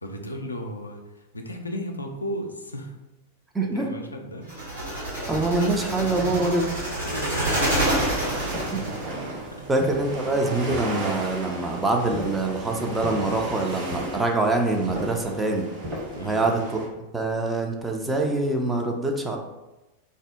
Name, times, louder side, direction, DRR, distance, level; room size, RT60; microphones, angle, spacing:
voice 1, 0.0-3.0 3.6-4.5 5.9-8.3 9.2-9.7 16.1-16.4, equal, 80° left, 3 dB, 0.3 m, -35 dB
voice 2, 3.5-3.9 5.3-6.6 8.7-8.8 9.7-15.7 16.2-16.8 17.1-19.4, right 2 dB, 10° right, 2 dB, 0.4 m, -25 dB
sound 1, 4.5-9.0, right 1 dB, 80° right, 0.9 m, -27 dB
sound 2, 5.3-5.7 6.3-6.9 7.5-8.0 8.5-9.2 9.8-10.5 12.1-12.5 13.0-13.3 13.9-14.3 14.9-15.3 15.8-16.3, equal, 25° right, 1.0 m, -37 dB
sound 3, 7.7-16.9, right 2 dB, 50° right, 0.7 m, -35 dB
2.6 x 2.0 x 3.5 m, 1.0 s
figure-of-eight pair, 90°, 0 cm